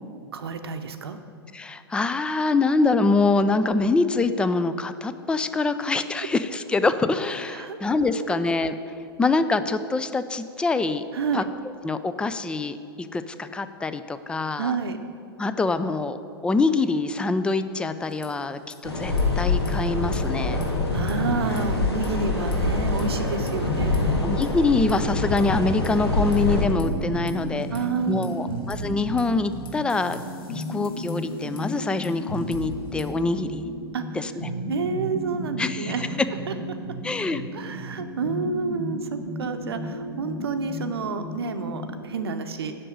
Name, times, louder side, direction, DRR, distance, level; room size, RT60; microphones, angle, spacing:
voice 1, 0.3-1.2 5.7-5.8 7.5-7.8 8.2-8.4 11.1-11.5 14.6-15.0 20.6-24.3 27.7-28.6 33.9-34.0 34.7-36.2 36.5-36.8 37.5-42.8, right 5 dB, 70° right, 8 dB, 0.7 m, -30 dB
voice 2, 1.5-8.8 9.2-11.0 11.3-11.4 11.8-14.7 15.4-16.2 16.4-20.6 24.2-27.7 28.1-30.2 30.5-33.6 34.1-34.5 35.6-35.9 37.0-37.4, left 3 dB, 5° left, 11 dB, 0.4 m, -25 dB
sound 1, 18.0-18.8 19.0-19.2 19.6-22.3 22.5-23.0 23.5-26.8 27.3-33.2, equal, 60° left, 1.7 m, -40 dB
sound 2, 18.8-26.6, left 2 dB, 80° left, 1.8 m, -25 dB
sound 3, 26.6-42.1, equal, 45° left, 2.1 m, -34 dB
7.6 x 6.2 x 7.9 m, 2.5 s
figure-of-eight pair, 105°, 13 cm